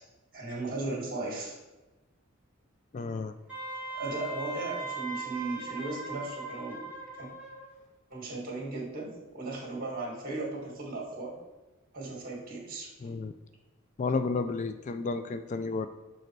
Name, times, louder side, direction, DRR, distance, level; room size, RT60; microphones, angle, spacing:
voice 1, 0.3-1.6 4.0-6.8 7.2-7.3 8.1-11.3 11.9-12.9, right 2 dB, 45° right, -2 dB, 2.3 m, -36 dB
voice 2, 2.9-3.3 13.0-13.3 14.0-15.9, left 4 dB, 35° left, 10 dB, 0.3 m, -31 dB
Wind instrument woodwind instrument, 3.5-7.7, right 3 dB, 5° right, 1.8 m, -39 dB
6.3 x 4.9 x 4.6 m, 1.1 s
head